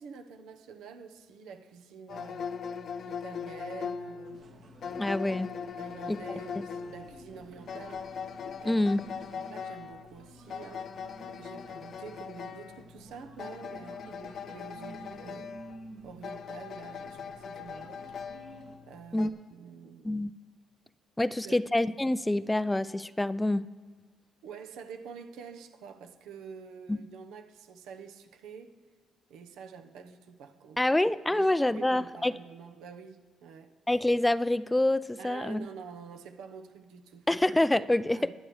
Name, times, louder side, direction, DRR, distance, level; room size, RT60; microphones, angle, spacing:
voice 1, 0.0-2.5 3.1-4.5 5.8-8.1 8.6-8.8 9.3-10.9 11.3-15.5 16.0-18.1 18.8-20.1 21.4-21.6 24.4-28.8 29.3-30.8 31.3-33.7 35.2-37.3 38.1-38.3, right 6 dB, 90° right, 0.9 m, -47 dB
sound 1, 2.1-19.3, left 6 dB, 60° left, 0.7 m, -41 dB
sound 2, 4.2-18.8, right 2 dB, 70° right, 2.0 m, -52 dB
voice 2, 5.0-5.5 6.1-6.2 8.6-9.0 19.1-19.3 20.0-20.3 21.2-23.7 26.9-27.0 30.8-32.3 33.9-35.6 37.3-38.3, left 1 dB, 10° left, 0.3 m, -26 dB
22.0 x 8.2 x 3.2 m
cardioid pair, 90°, 0 cm